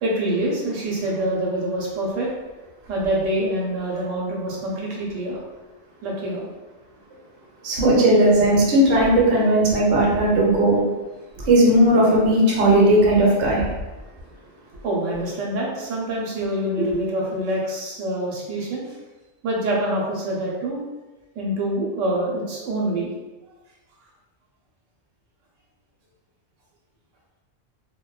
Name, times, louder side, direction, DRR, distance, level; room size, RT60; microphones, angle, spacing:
voice 1, 0.0-2.3 2.9-5.4 6.0-6.5 14.8-18.8 19.4-20.8 21.4-23.1, right 1 dB, 90° right, -3 dB, 1.0 m, -25 dB
voice 2, 7.6-10.8 11.5-13.6 16.8-16.9, right 1 dB, 60° right, -4 dB, 0.8 m, -17 dB
2.6 x 2.1 x 2.3 m, 1.1 s
omnidirectional pair, 1.2 m